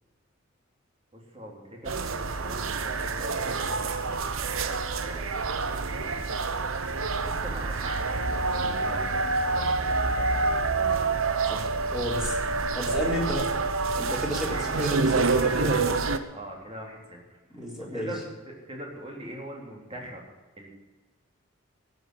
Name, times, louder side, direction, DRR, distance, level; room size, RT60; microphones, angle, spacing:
voice 1, 1.1-6.6 7.2-10.6 14.5-14.8 16.3-17.2 17.9-18.2 18.5-20.2 20.6-20.7, right 1 dB, 25° right, -1 dB, 3.3 m, -43 dB
sound 1, 1.8-16.2, right 3 dB, 70° right, 0.9 m, -27 dB
voice 2, 11.5-12.4 12.7-13.5 13.9-15.8 17.5-18.1, equal, ahead, -3 dB, 3.9 m, -32 dB
15.5 x 8.0 x 9.2 m, 1.2 s
head